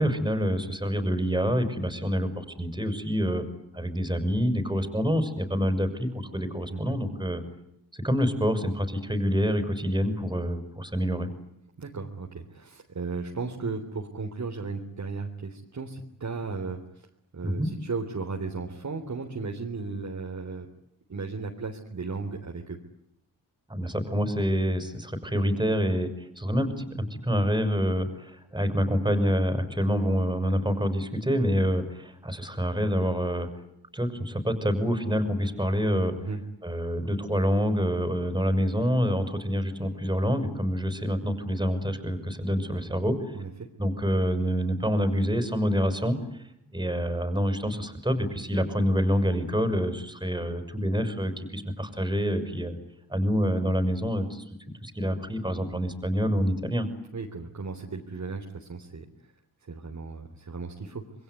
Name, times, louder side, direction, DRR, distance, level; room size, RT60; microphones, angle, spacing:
voice 1, 0.0-3.4 3.7-7.4 7.9-11.3 17.4-17.7 23.7-33.5 33.9-36.1 36.6-43.2 43.8-46.2 46.7-52.8 53.1-54.4 54.8-56.9, equal, 10° right, 9 dB, 6.3 m, -27 dB
voice 2, 11.8-17.1 17.3-20.7 21.1-22.8 36.2-36.4 43.3-43.7 57.1-59.1 59.7-61.0, right 4 dB, 50° right, 1 dB, 3.8 m, -35 dB
27.5 x 22.0 x 9.6 m, 0.77 s
cardioid pair, 70°, 37 cm